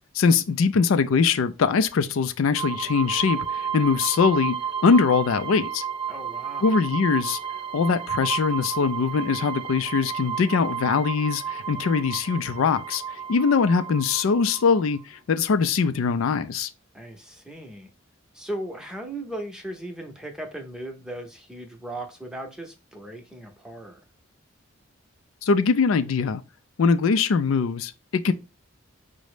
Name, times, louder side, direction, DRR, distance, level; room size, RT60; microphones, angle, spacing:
voice 1, 0.1-4.6 4.8-5.8 6.6-7.4 7.7-13.0 13.3-16.7 25.4-26.4 26.8-28.3, left 5 dB, 75° left, 0.4 m, -22 dB
sound 1, 2.5-15.0, right 8 dB, 25° right, 0.3 m, -32 dB
voice 2, 6.1-6.7 16.9-17.9 18.3-24.0, right 1 dB, 5° right, 0.7 m, -37 dB
5.2 x 2.1 x 4.8 m
head